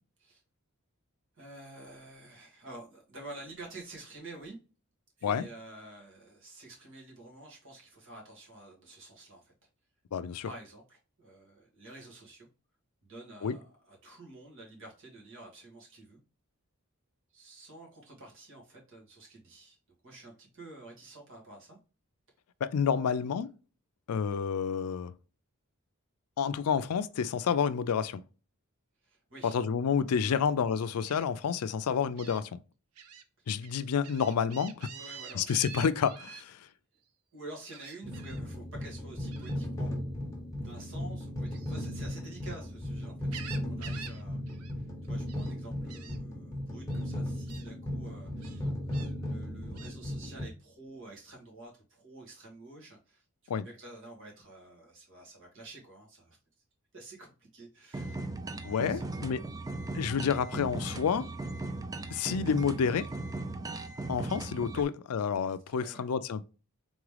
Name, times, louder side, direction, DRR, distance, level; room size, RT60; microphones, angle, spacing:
voice 1, 1.4-4.6 5.2-9.5 10.4-12.5 13.0-16.2 17.3-19.8 20.0-21.8 23.0-23.3 29.0-29.6 30.3-30.5 34.9-35.5 37.3-39.9 40.6-56.4 56.9-58.2 58.7-59.7 64.7-64.9 65.7-66.1, right 2 dB, 60° right, 2.0 m, -49 dB
voice 2, 10.1-10.5 13.4-13.5 22.6-23.5 24.1-25.1 26.4-28.2 29.5-32.6 33.5-34.9 35.4-36.6 53.5-53.7 58.6-59.4 59.9-61.3 62.1-63.1 64.1-66.4, left 7 dB, 80° left, 0.4 m, -29 dB
Gull seagull, 31.1-31.2 32.2-32.4 33.0-33.2 33.6-36.4 37.7-38.4 39.3-39.6 41.4-42.7 43.1-44.2 44.5-44.7 45.0-45.5 45.9-46.2 46.9-47.0 47.5-47.7 48.4-49.1 49.8-50.0, right 7 dB, 85° right, 0.7 m, -47 dB
sound 1, 38.0-50.5, left 1 dB, 15° left, 1.0 m, -36 dB
sound 2, 57.9-64.8, right 2 dB, 15° right, 0.3 m, -38 dB
3.8 x 3.6 x 3.2 m
head